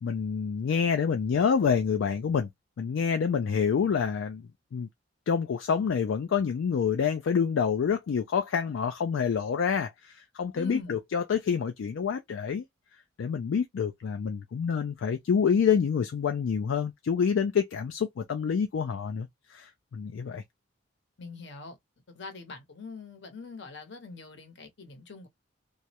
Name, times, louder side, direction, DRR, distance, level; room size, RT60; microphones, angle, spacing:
voice 1, 0.0-2.5 2.8-4.9 5.3-12.7 13.2-20.4, left 6 dB, 75° left, 0.3 m, -27 dB
voice 2, 10.5-11.0 21.2-21.8 22.1-25.3, left 4 dB, 60° left, 0.8 m, -43 dB
2.3 x 2.0 x 2.7 m
head